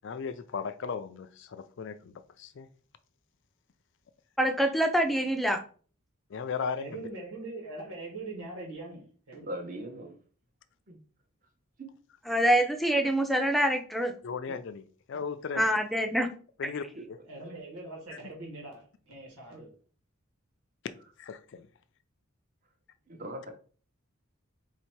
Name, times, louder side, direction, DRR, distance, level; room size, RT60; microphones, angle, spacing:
voice 1, 0.0-2.7 6.3-7.0 14.2-14.8 15.1-15.7 16.6-17.2 21.2-21.7, left 5 dB, 55° left, 0.4 m, -36 dB
voice 2, 4.4-5.6 12.3-14.1 15.6-16.3, equal, ahead, 0.5 m, -25 dB
voice 3, 6.8-9.5 17.2-19.7, right 2 dB, 85° right, 1.7 m, -42 dB
voice 4, 9.5-10.2 10.9-11.0 11.8-11.9 14.5-14.6 16.9-17.0 23.1-23.5, right 1 dB, 40° right, 1.0 m, -39 dB
4.1 x 2.8 x 4.5 m
head